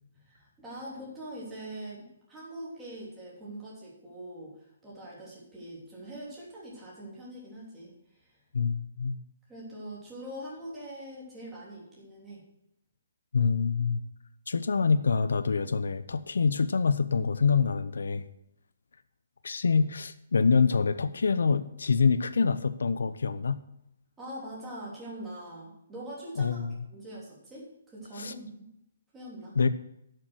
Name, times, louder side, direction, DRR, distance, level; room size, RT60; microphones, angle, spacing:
voice 1, 0.2-8.3 9.5-12.4 24.2-28.7 29.1-29.6, right 1 dB, 10° right, -7 dB, 3.3 m, -43 dB
voice 2, 8.5-9.2 13.3-14.0 14.5-18.2 19.4-23.6 26.4-26.7 28.2-28.3 29.6-29.7, left 5 dB, 90° left, 12 dB, 0.7 m, -26 dB
11.5 x 6.7 x 6.4 m, 0.80 s
hypercardioid pair, 165°, 0 cm